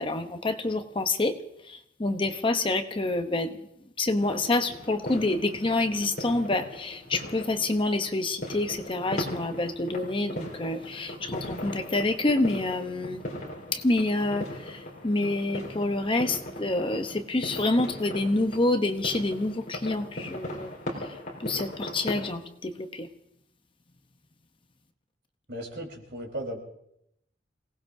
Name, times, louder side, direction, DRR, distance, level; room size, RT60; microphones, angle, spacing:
voice 1, 0.0-1.4 1.6-3.7 4.0-13.2 13.7-20.7 21.0-21.1 21.4-23.1, left 2 dB, 30° left, 7 dB, 0.8 m, -27 dB
sound 1, 4.2-22.3, equal, 45° left, 4.1 m, -39 dB
voice 2, 25.5-26.6, right 1 dB, 70° right, 0 dB, 4.0 m, -36 dB
27.5 x 18.5 x 2.7 m, 0.78 s
head